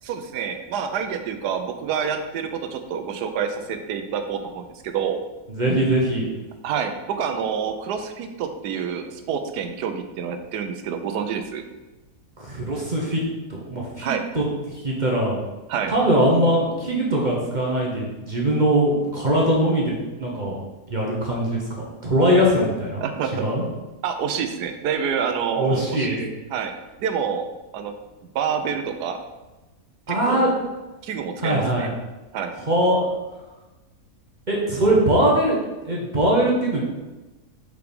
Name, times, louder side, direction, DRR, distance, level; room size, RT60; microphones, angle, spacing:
voice 1, 0.0-5.2 6.6-11.6 14.0-14.2 15.7-15.9 23.0-23.5 24.0-26.2 26.5-26.7 27.0-27.5 27.7-27.9 28.3-29.2 30.1-30.5 31.0-31.9 32.3-32.5, right 7 dB, 90° right, 7 dB, 1.3 m, -27 dB
voice 2, 5.5-6.2 12.4-13.2 13.5-14.4 14.8-15.4 15.9-20.6 20.9-23.1 23.4-23.6 25.6-26.3 30.1-30.5 31.4-31.9 32.7-33.0 34.5-35.6 35.8-36.8, right 1 dB, 30° right, -3 dB, 1.1 m, -21 dB
5.0 x 4.6 x 5.2 m, 1.1 s
omnidirectional pair, 1.7 m